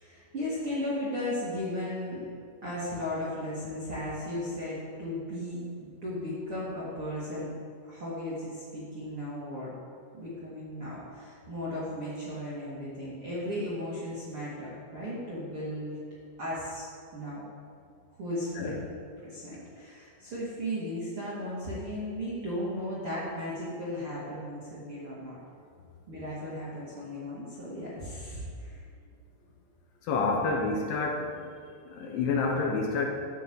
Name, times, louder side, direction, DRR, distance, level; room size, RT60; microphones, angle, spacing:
voice 1, 0.0-2.3 2.6-7.5 7.8-9.7 10.1-16.0 16.4-16.9 17.1-17.4 18.1-18.8 19.2-25.4 26.1-28.8, left 1 dB, 40° right, -9 dB, 2.2 m, -36 dB
voice 2, 30.0-31.5 31.9-33.1, left 4 dB, 70° left, 0 dB, 3.3 m, -28 dB
13.5 x 6.9 x 8.0 m, 2.3 s
omnidirectional pair, 6.0 m